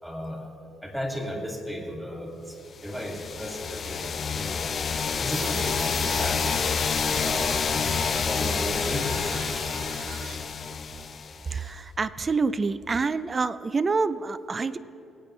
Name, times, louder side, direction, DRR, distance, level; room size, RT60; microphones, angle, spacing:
voice 1, 0.0-0.5 0.8-4.7 5.1-6.8 7.1-9.6, equal, 5° right, 0 dB, 2.3 m, -35 dB
sound 1, 2.9-11.6, left 6 dB, 50° left, 0.5 m, -28 dB
sound 2, 5.3-10.4, right 4 dB, 60° right, 1.2 m, -39 dB
voice 2, 11.5-14.8, right 4 dB, 35° right, 15 dB, 0.4 m, -27 dB
22.0 x 8.9 x 3.2 m, 2.9 s
cardioid pair, 90°, 0 cm